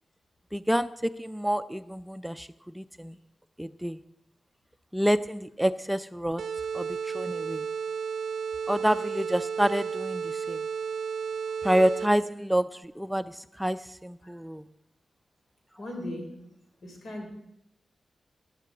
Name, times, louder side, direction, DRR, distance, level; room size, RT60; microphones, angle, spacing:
voice 1, 0.5-2.5 2.7-3.1 3.6-4.0 4.9-6.4 6.7-7.7 8.7-10.7 11.6-14.7, equal, 5° right, 12 dB, 0.5 m, -28 dB
sound 1, 6.4-12.3, right 6 dB, 75° right, 0.4 m, -33 dB
voice 2, 15.8-16.3 16.8-17.3, left 1 dB, 70° left, 2 dB, 3.5 m, -37 dB
15.0 x 10.5 x 5.0 m, 0.80 s
cardioid pair, 45°, 0 cm